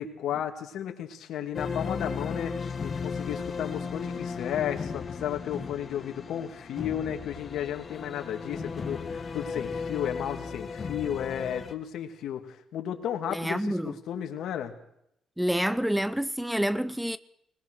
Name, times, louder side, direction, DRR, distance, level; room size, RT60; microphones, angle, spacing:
voice 1, 0.0-2.6 2.8-14.7, left 10 dB, 75° left, 2.6 m, -33 dB
sound 1, 1.5-11.7, left 5 dB, 40° left, 1.9 m, -35 dB
voice 2, 13.3-13.9 15.4-17.2, equal, 5° right, 0.7 m, -28 dB
21.5 x 20.5 x 6.5 m
cardioid pair, 90°, 0 cm